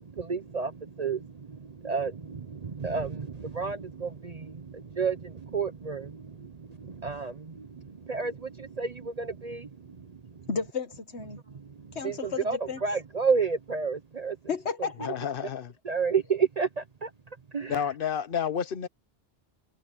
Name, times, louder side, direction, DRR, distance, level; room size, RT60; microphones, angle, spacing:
voice 1, 0.0-10.1 10.4-10.5 11.3-11.7 12.0-14.4 15.8-17.1 17.5-17.8, right 5 dB, 40° right, 0.8 m, -31 dB
voice 2, 10.5-11.4 12.0-12.8 14.5-15.1, left 5 dB, 80° left, 1.8 m, -33 dB
voice 3, 15.0-15.7 17.7-18.9, left 8 dB, 55° left, 1.0 m, -30 dB
omnidirectional pair, 1.1 m